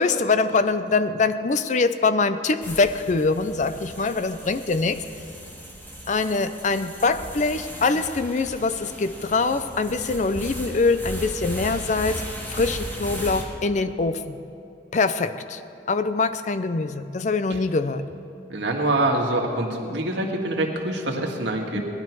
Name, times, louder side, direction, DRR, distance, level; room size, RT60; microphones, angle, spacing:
voice 1, 0.0-5.0 6.1-12.2 12.5-14.4 14.9-15.6 15.9-18.1 21.8-21.9, left 3 dB, 40° left, 12 dB, 0.5 m, -23 dB
sound 1, 2.6-13.4, equal, 10° left, 1.7 m, -37 dB
voice 2, 18.5-21.8, right 1 dB, 85° right, 1 dB, 1.8 m, -25 dB
18.5 x 11.5 x 4.7 m, 2.8 s
head